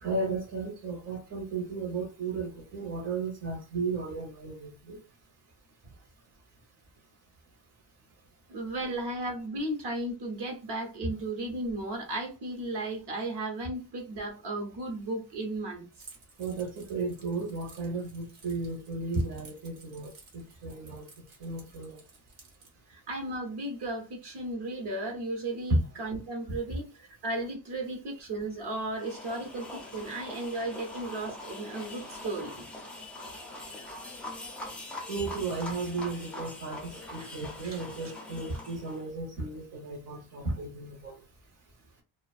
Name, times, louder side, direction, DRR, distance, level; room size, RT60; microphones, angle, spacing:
voice 1, 0.0-5.0 16.4-21.1 21.4-22.0 35.1-41.2, right 3 dB, 35° right, 0.8 m, -35 dB
voice 2, 8.5-15.8 22.9-32.5 37.2-37.3, right 2 dB, 60° right, 1.0 m, -35 dB
Keys jangling, 16.0-22.7, right 4 dB, 80° right, 1.3 m, -55 dB
sound 1, 28.9-39.0, left 2 dB, 5° left, 0.4 m, -43 dB
2.5 x 2.4 x 2.3 m
wide cardioid pair, 175°, 46 cm